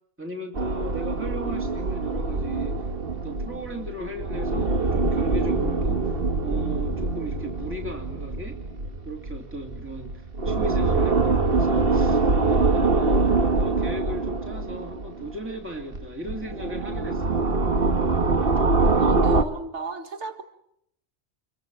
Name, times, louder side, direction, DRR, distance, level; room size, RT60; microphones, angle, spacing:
voice 1, 0.2-6.2 6.4-8.6 9.0-17.4, equal, 10° right, 2 dB, 2.7 m, -36 dB
sound 1, 0.5-15.6 15.9-19.4, right 3 dB, 55° right, 1.7 m, -24 dB
voice 2, 19.0-20.4, right 3 dB, 80° right, 7 dB, 2.1 m, -35 dB
28.5 x 23.0 x 7.7 m, 0.75 s
omnidirectional pair, 1.2 m